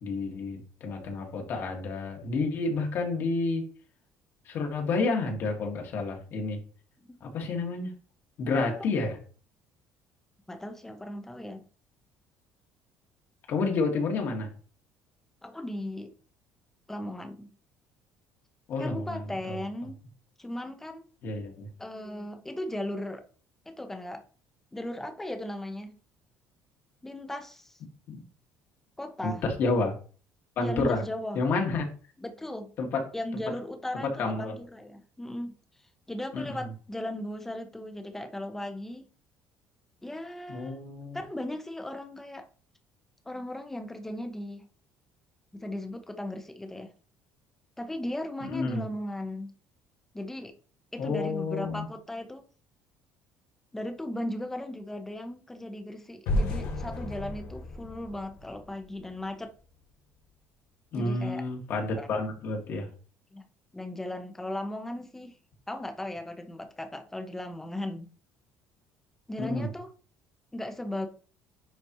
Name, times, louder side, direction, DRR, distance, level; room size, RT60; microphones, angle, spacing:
voice 1, 0.0-3.7 4.5-6.6 7.2-7.9 8.4-9.2 13.5-14.5 18.7-19.2 19.5-19.6 21.2-21.7 28.1-28.2 29.2-29.9 30.6-31.0 31.3-31.9 32.8-33.0 33.3-33.4 33.9-34.6 36.3-36.6 40.5-41.2 48.4-48.8 51.0-51.9 60.9-62.9 69.4-69.7, left 3 dB, 50° left, 2.0 m, -30 dB
voice 2, 10.5-11.6 15.4-16.1 16.9-17.5 18.8-20.0 20.4-21.1 21.8-23.2 23.7-24.2 24.7-26.0 27.0-27.8 29.0-29.4 30.6-31.4 32.2-32.7 33.1-35.6 36.1-39.1 40.0-40.8 41.1-42.5 43.2-44.7 45.5-46.9 47.8-49.5 50.1-50.5 50.9-52.4 53.7-59.5 60.9-61.4 62.0-62.1 63.3-63.5 63.7-65.4 65.7-68.1 69.3-69.9 70.5-71.1, left 1 dB, 5° left, 0.9 m, -37 dB
sound 1, 56.3-59.3, left 1 dB, 80° left, 2.0 m, -32 dB
10.0 x 4.1 x 3.1 m
cardioid pair, 160°, 5 cm